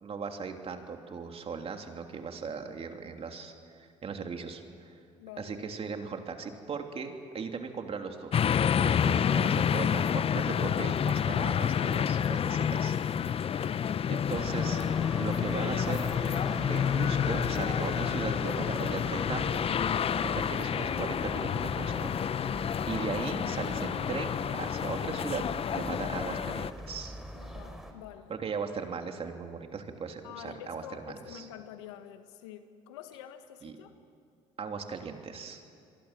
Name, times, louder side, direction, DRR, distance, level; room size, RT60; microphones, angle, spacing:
voice 1, 0.0-5.0 5.4-13.0 13.2-13.8 14.1-14.8 15.2-16.1 16.5-22.1 22.5-22.6 22.9-25.4 25.7-27.2 28.3-31.4 33.6-33.7 34.6-35.6, right 5 dB, 45° right, 4 dB, 3.1 m, -38 dB
voice 2, 5.2-5.6 11.3-12.5 13.5-14.1 27.4-28.3 30.2-34.0, left 10 dB, 90° left, 8 dB, 1.7 m, -47 dB
sound 1, 8.3-26.7, left 8 dB, 40° left, 0.7 m, -29 dB
sound 2, 14.3-27.9, equal, ahead, 4.4 m, -41 dB
28.5 x 23.0 x 7.6 m, 2.5 s
hypercardioid pair, 70°, 14 cm